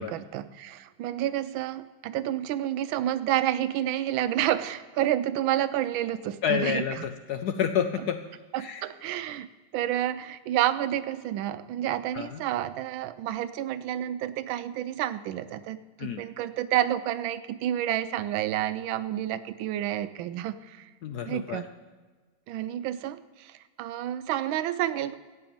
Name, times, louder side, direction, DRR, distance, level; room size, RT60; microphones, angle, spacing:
voice 1, 0.0-6.8 8.5-9.5 9.7-20.9 21.2-21.7 22.5-25.1, right 12 dB, 80° right, 13 dB, 1.4 m, -29 dB
voice 2, 6.4-8.3 8.6-8.8 12.1-12.4 16.0-16.2 21.0-21.6, left 8 dB, 70° left, 8 dB, 0.9 m, -29 dB
14.5 x 6.9 x 8.8 m, 1.3 s
omnidirectional pair, 2.2 m